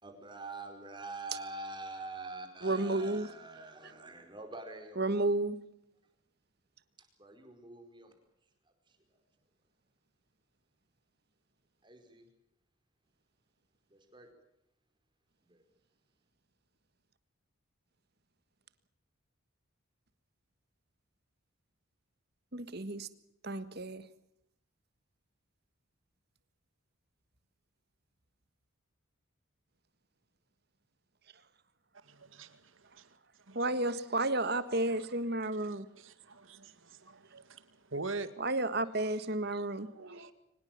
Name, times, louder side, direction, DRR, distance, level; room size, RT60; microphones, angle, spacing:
voice 1, 0.0-5.2 7.2-8.1 11.8-12.2 13.9-14.3 15.5-15.6, right 2 dB, 20° right, 4.8 m, -45 dB
voice 2, 2.6-3.3 5.0-5.6 22.5-23.1 23.4-24.0 33.5-35.8 38.4-39.9, right 2 dB, 50° right, 1.6 m, -32 dB
voice 3, 32.0-33.1 33.5-33.7 34.9-38.3 39.6-40.3, right 3 dB, 65° right, 2.1 m, -45 dB
24.5 x 20.0 x 7.4 m
head